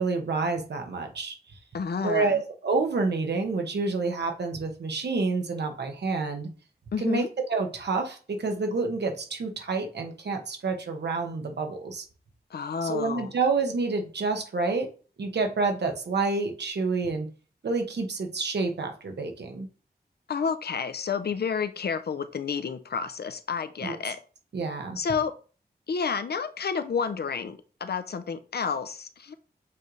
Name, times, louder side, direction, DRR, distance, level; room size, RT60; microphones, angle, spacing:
voice 1, 0.0-1.6 2.0-6.5 7.0-12.0 12.8-14.9 15.2-17.3 17.6-19.7 23.8-23.9 24.5-25.0, right 4 dB, 85° right, 4 dB, 1.2 m, -28 dB
voice 2, 1.7-2.4 6.9-7.3 12.5-13.3 20.3-24.2 25.0-25.3 25.9-29.3, left 6 dB, 70° left, 10 dB, 0.6 m, -30 dB
7.5 x 3.3 x 3.9 m, 0.37 s
wide cardioid pair, 120°, 17 cm